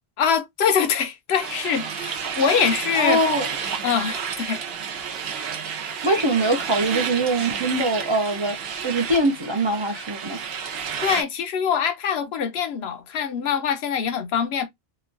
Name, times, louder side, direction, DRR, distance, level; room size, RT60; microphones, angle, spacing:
voice 1, 0.2-3.3 3.8-4.6 11.0-14.6, left 7 dB, 80° left, 0.9 m, -24 dB
sound 1, 1.4-11.2, right 7 dB, 75° right, 0.9 m, -30 dB
voice 2, 3.0-3.5 6.0-10.4, right 1 dB, 40° right, 0.4 m, -23 dB
2.9 x 2.2 x 2.3 m
omnidirectional pair, 1.0 m